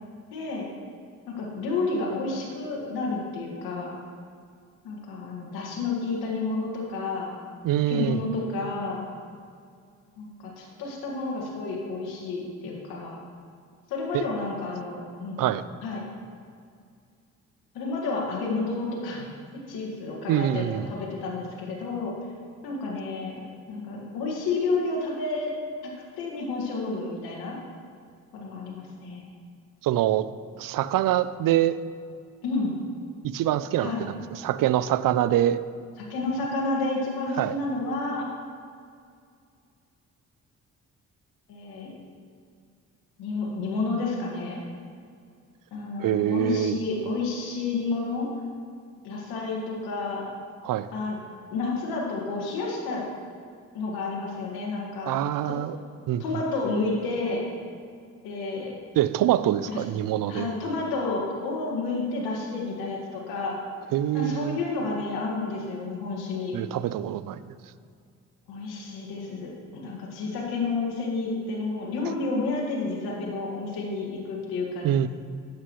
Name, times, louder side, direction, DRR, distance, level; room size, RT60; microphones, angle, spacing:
voice 1, 0.3-0.7 1.3-4.0 4.8-7.4 7.9-9.1 10.2-13.2 13.9-15.4 15.8-16.0 17.7-19.3 19.7-22.1 22.6-23.3 23.7-25.5 26.2-27.6 28.3-29.3 32.4-32.7 33.8-34.0 36.0-38.3 41.5-41.9 43.2-44.6 45.7-48.3 49.0-50.2 50.9-51.2 51.5-53.1 53.7-55.1 55.4-55.6 56.2-57.5 58.2-58.7 59.6-59.8 60.3-63.5 64.1-66.6 68.5-75.1, left 3 dB, 75° left, -3 dB, 1.9 m, -30 dB
voice 2, 7.6-8.2 14.1-14.2 15.4-15.6 20.3-20.9 29.8-30.3 30.6-31.8 33.2-35.6 37.4-37.5 46.0-46.8 50.6-50.9 55.1-55.8 56.1-56.2 59.0-60.5 63.9-64.6 66.5-67.4 74.8-75.1, right 12 dB, 60° right, 15 dB, 0.5 m, -25 dB
11.5 x 8.2 x 3.1 m, 2.3 s
hypercardioid pair, 50°, 38 cm